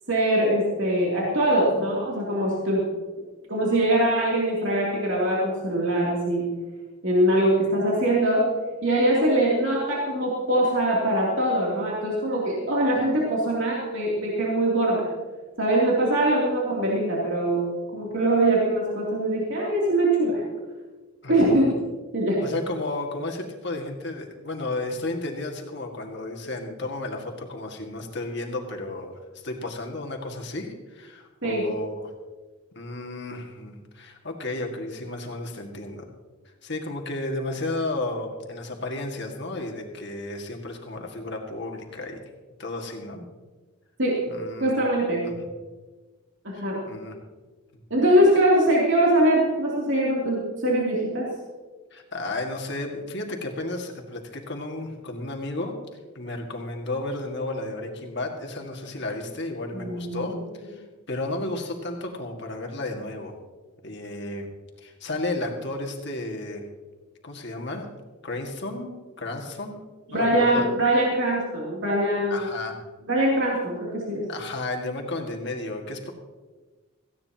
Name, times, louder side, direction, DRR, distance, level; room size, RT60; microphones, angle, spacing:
voice 1, 0.1-2.8 3.5-6.4 7.0-8.5 8.8-15.1 15.6-17.7 17.9-20.4 21.3-21.7 22.1-22.4 31.4-31.7 44.0-44.2 44.6-45.3 46.4-46.8 47.9-51.3 59.8-60.3 70.1-72.5 73.1-74.2, right 1 dB, 60° right, -5 dB, 2.9 m, -22 dB
voice 2, 21.2-21.7 22.4-32.1 32.8-36.1 36.6-42.2 42.6-43.2 44.3-44.7 45.2-45.5 46.5-47.1 47.7-47.8 51.9-55.7 56.1-63.4 63.8-64.5 64.8-66.6 67.2-67.9 68.2-69.8 70.1-70.7 72.3-72.7 74.3-76.1, left 2 dB, 55° left, 2 dB, 2.0 m, -33 dB
18.0 x 15.5 x 2.9 m, 1.3 s
head